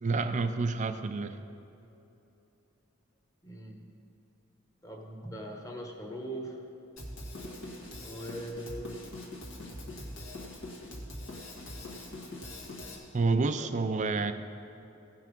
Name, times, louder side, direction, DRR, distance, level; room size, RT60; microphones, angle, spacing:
voice 1, 0.0-1.4 13.1-14.3, right 3 dB, 35° right, 10 dB, 0.4 m, -28 dB
voice 2, 3.4-3.9 4.8-6.7 7.9-9.0 11.6-12.0 13.6-13.7, right 1 dB, 15° left, 1 dB, 1.2 m, -41 dB
Drum kit, 7.0-13.0, left 1 dB, 65° left, 1.7 m, -43 dB
16.0 x 5.8 x 5.2 m, 2.9 s
head